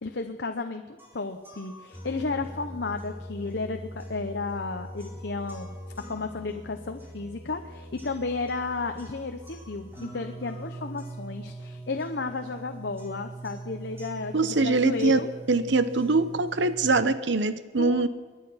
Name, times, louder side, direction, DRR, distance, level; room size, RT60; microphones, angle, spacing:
voice 1, 0.0-5.8 6.1-15.3 17.8-18.1, left 3 dB, 60° left, 6 dB, 0.8 m, -33 dB
sound 1, 1.0-17.0, right 1 dB, 10° right, 4.2 m, -42 dB
voice 2, 14.3-15.2 15.5-18.1, right 3 dB, 70° right, 13 dB, 0.9 m, -23 dB
22.5 x 9.9 x 5.7 m, 1.5 s
head